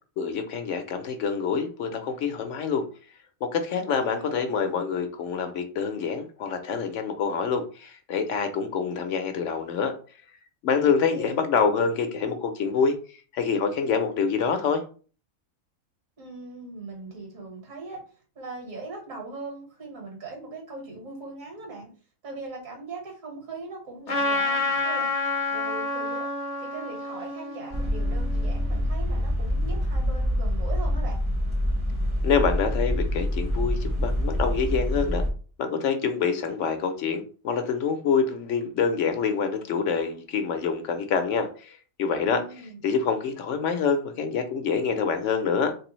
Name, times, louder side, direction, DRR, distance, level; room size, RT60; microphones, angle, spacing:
voice 1, 0.2-2.9 3.4-9.9 10.6-14.8 32.2-35.2 35.6-42.4 42.8-45.7, left 6 dB, 70° left, 7 dB, 0.9 m, -26 dB
voice 2, 3.7-4.5 10.8-11.4 16.2-18.0 18.3-21.9 22.2-25.1 25.5-26.3 26.6-31.2 42.2-42.8, right 2 dB, 70° right, 1 dB, 1.8 m, -40 dB
Trumpet, 24.1-28.7, left 3 dB, 40° left, 0.6 m, -29 dB
sound 1, 27.7-35.3, equal, 25° right, 0.7 m, -26 dB
3.3 x 3.3 x 3.0 m, 0.38 s
omnidirectional pair, 1.4 m